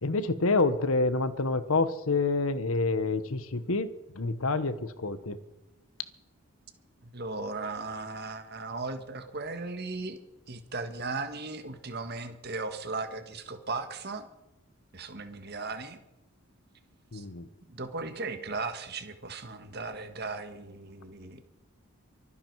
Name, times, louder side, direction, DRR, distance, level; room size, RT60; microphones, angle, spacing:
voice 1, 0.0-3.9 4.1-5.4 17.1-17.5, left 3 dB, 75° left, 13 dB, 1.1 m, -27 dB
voice 2, 7.0-10.2 10.5-14.3 14.9-16.0 17.1-17.3 17.7-21.4, right 3 dB, 50° right, 8 dB, 1.6 m, -37 dB
24.0 x 10.0 x 4.8 m, 0.95 s
head